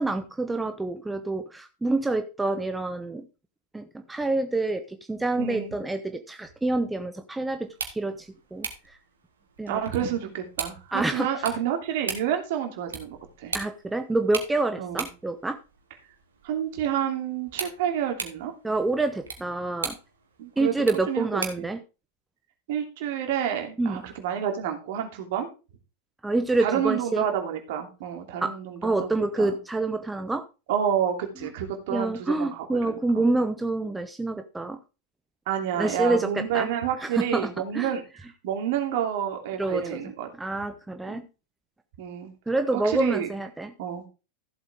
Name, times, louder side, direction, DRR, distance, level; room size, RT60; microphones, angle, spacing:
voice 1, 0.0-3.3 3.7-9.0 9.6-9.8 10.9-11.3 13.5-15.6 18.6-20.0 20.6-21.8 23.8-24.0 26.2-27.2 28.4-28.5 28.8-30.4 31.4-31.5 31.9-34.8 35.7-36.7 37.0-37.9 39.6-40.0 40.4-41.2 42.5-43.7, right 2 dB, 10° right, 7 dB, 1.0 m, -27 dB
voice 2, 5.4-5.7 9.7-13.5 14.8-15.1 16.4-18.5 20.4-20.7 21.1-21.7 22.7-25.5 26.6-29.6 30.7-33.2 35.5-38.0 38.4-40.3 41.1-41.3 42.0-42.3 42.7-43.3 43.8-44.0, right 9 dB, 50° right, 4 dB, 2.9 m, -29 dB
sound 1, 7.6-21.7, right 5 dB, 70° right, 2.4 m, -40 dB
14.5 x 7.9 x 3.6 m, 0.31 s
figure-of-eight pair, 90°, 0 cm